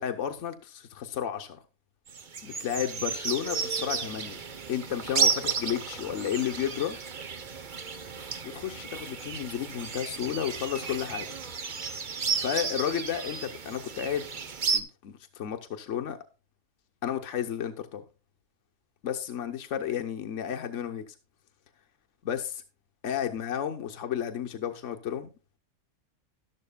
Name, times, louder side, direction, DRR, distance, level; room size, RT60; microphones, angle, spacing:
voice 1, 0.0-1.6 2.4-4.4 4.7-7.0 8.5-11.4 12.4-14.3 14.7-16.2 17.0-18.0 19.0-21.1 22.2-22.6 23.0-25.3, left 9 dB, 75° left, 1.3 m, -32 dB
sound 1, 2.1-14.8, right 5 dB, 45° right, 0.9 m, -33 dB
12.5 x 12.0 x 2.2 m
omnidirectional pair, 1.3 m